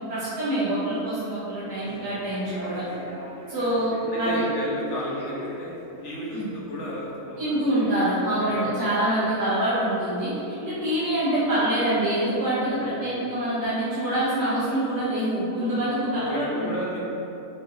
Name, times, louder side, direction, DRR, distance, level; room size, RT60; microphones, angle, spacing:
voice 1, 0.1-2.9 3.5-3.9 4.2-4.4 6.3-6.5 7.4-10.3 10.6-16.7, right 1 dB, 80° right, -13 dB, 2.3 m, -25 dB
Human voice / Subway metro underground, 1.6-7.1, right 1 dB, 40° right, 1.0 m, -41 dB
voice 2, 1.8-2.3 3.6-3.9 4.1-7.9 8.4-8.7 12.8-13.2 15.7-17.0, left 1 dB, 50° left, -5 dB, 1.5 m, -34 dB
6.5 x 4.3 x 4.0 m, 2.9 s
omnidirectional pair, 1.7 m